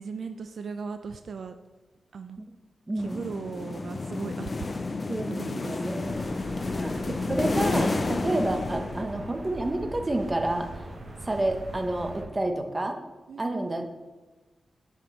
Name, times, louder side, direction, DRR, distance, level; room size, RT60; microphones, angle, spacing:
voice 1, 0.0-1.5 2.1-2.4 3.0-6.1 8.2-8.6 13.3-13.7, right 5 dB, 75° right, 8 dB, 0.3 m, -38 dB
voice 2, 2.9-3.2 5.1-6.3 6.8-10.7 11.3-13.0 13.4-13.9, right 1 dB, 25° right, 5 dB, 0.8 m, -29 dB
sound 1, 3.0-9.5, left 3 dB, 40° left, 0.4 m, -31 dB
sound 2, 6.0-12.3, right 1 dB, 55° right, 1.2 m, -41 dB
6.3 x 5.2 x 4.3 m, 1.2 s
wide cardioid pair, 105°, 0 cm